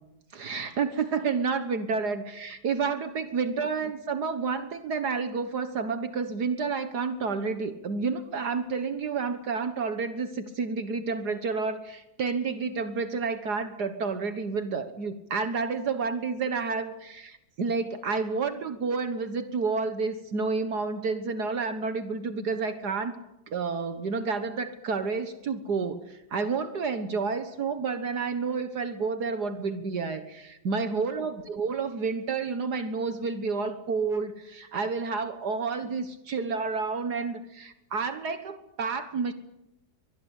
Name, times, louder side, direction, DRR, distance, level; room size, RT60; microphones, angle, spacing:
voice 1, 0.3-23.2 23.5-39.3, right 4 dB, 70° right, 9 dB, 1.9 m, -30 dB
24.5 x 21.0 x 8.3 m, 0.90 s
omnidirectional pair, 1.8 m